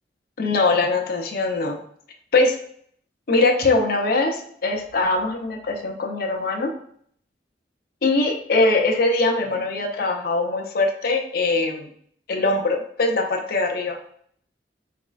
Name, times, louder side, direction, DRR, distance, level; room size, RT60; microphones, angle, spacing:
voice 1, 0.4-1.8 2.3-2.6 3.3-6.7 8.0-11.9 12.3-14.0, left 3 dB, 60° left, 2 dB, 0.6 m, -22 dB
4.0 x 3.5 x 2.3 m, 0.63 s
head